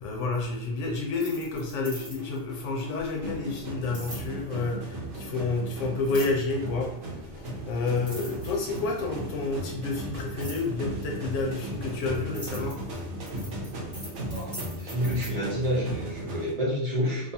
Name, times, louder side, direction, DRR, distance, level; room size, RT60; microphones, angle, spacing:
voice 1, 0.0-12.8, left 3 dB, 90° left, 1 dB, 0.9 m, -30 dB
sound 1, 1.1-2.4 3.9-4.3 6.1-6.5 7.5-7.6 7.9-9.0 10.4-10.7 11.5-15.3, right 1 dB, 5° left, 0.9 m, -42 dB
sound 2, 1.1-16.5, right 1 dB, 80° right, 1.0 m, -37 dB
voice 2, 14.8-17.3, equal, 40° right, -6 dB, 0.7 m, -28 dB
2.5 x 2.3 x 2.7 m, 0.75 s
omnidirectional pair, 1.2 m